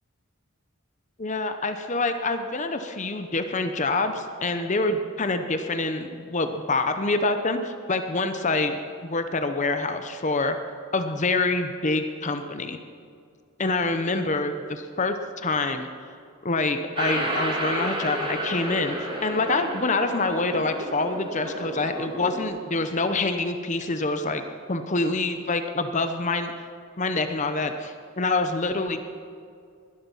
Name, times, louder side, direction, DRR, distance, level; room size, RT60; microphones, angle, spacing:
voice 1, 1.2-10.6 10.9-12.8 13.6-15.9 16.4-24.4 24.7-26.5 27.0-29.2, left 3 dB, 35° left, 8 dB, 0.8 m, -26 dB
sound 1, 17.0-22.4, right 1 dB, 20° right, 2.3 m, -31 dB
21.0 x 11.5 x 5.6 m, 2.3 s
head